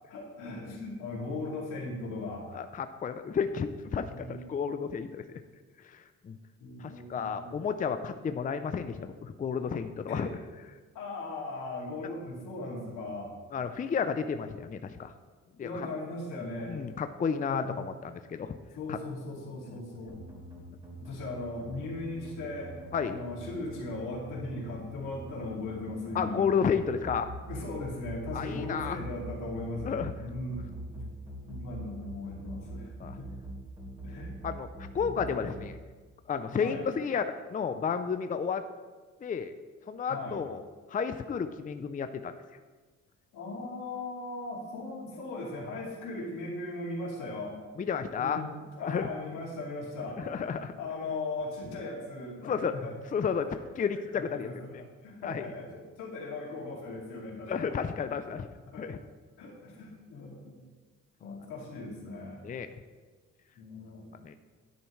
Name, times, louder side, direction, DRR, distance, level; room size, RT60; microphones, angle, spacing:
voice 1, 0.1-2.5 4.1-4.5 6.6-7.6 10.1-10.3 10.9-13.4 15.6-16.8 17.4-17.8 18.7-20.2 21.0-22.8 23.0-26.5 27.5-30.7 31.5-32.9 33.2-33.3 34.0-34.3 35.0-35.4 36.5-36.9 40.1-40.4 43.3-47.6 48.2-50.2 50.8-52.9 53.3-53.6 54.1-57.8 58.3-58.9 59.4-60.6 61.2-62.5 63.6-64.1, left 2 dB, 85° left, -3 dB, 2.5 m, -38 dB
voice 2, 2.5-5.2 5.8-6.4 6.8-10.3 13.5-15.1 15.6-15.9 16.3-18.6 18.9-19.0 19.7-19.8 22.9-23.2 26.1-27.3 28.3-29.0 29.9-30.1 31.0-31.1 33.0-33.2 34.4-35.8 36.3-38.6 39.2-39.5 39.9-40.6 40.9-42.3 47.8-48.4 48.8-49.1 50.2-50.7 52.4-52.7 53.1-53.5 53.8-54.5 55.2-55.4 57.5-58.5 58.8-59.0 62.4-62.7 64.2-64.3, left 6 dB, 25° left, 9 dB, 0.5 m, -32 dB
sound 1, 20.1-35.6, right 1 dB, 20° right, 3.3 m, -43 dB
10.0 x 9.0 x 3.2 m, 1.4 s
cardioid pair, 90°, 30 cm